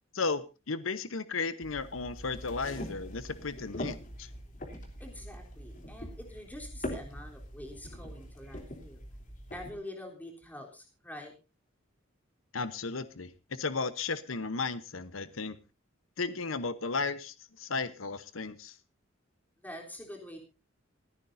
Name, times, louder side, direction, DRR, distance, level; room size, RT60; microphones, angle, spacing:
voice 1, 0.1-4.3 12.5-15.6 16.2-18.7, left 4 dB, 85° left, 13 dB, 1.0 m, -34 dB
sound 1, 1.6-9.7, left 1 dB, 40° left, 3.2 m, -43 dB
voice 2, 5.0-9.0 9.5-11.3 19.6-20.4, left 1 dB, 10° left, 1 dB, 3.6 m, -46 dB
27.5 x 9.8 x 2.7 m, 0.28 s
head